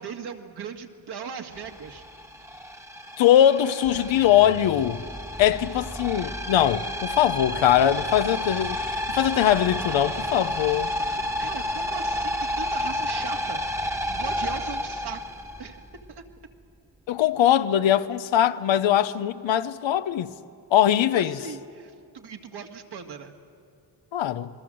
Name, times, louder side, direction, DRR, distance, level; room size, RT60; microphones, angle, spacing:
voice 1, 0.0-2.0 11.1-15.2 15.6-15.8 16.1-16.2 21.1-23.3, right 6 dB, 60° right, 2.1 m, -38 dB
sound 1, 1.5-16.1, left 1 dB, 5° right, 1.5 m, -31 dB
voice 2, 3.2-5.0 5.4-10.9 17.1-20.3 20.7-21.4 24.1-24.5, left 11 dB, 80° left, 1.0 m, -21 dB
28.0 x 21.0 x 7.8 m
cardioid pair, 90°, 45 cm